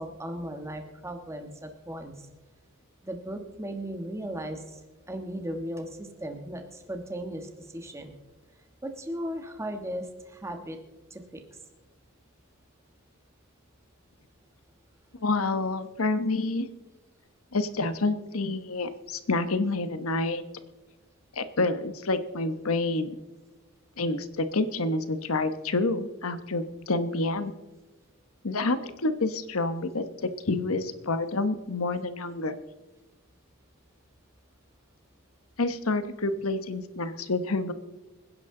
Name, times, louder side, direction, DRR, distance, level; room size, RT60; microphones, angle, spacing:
voice 1, 0.0-2.1 3.0-4.8 5.1-8.1 8.8-10.8 11.1-11.4, right 1 dB, 15° right, 5 dB, 1.3 m, -36 dB
voice 2, 15.2-16.7 17.5-20.4 21.3-23.2 24.0-27.5 28.4-32.5 35.6-37.7, left 2 dB, 90° left, 11 dB, 1.1 m, -28 dB
26.0 x 10.5 x 3.8 m, 1.1 s
head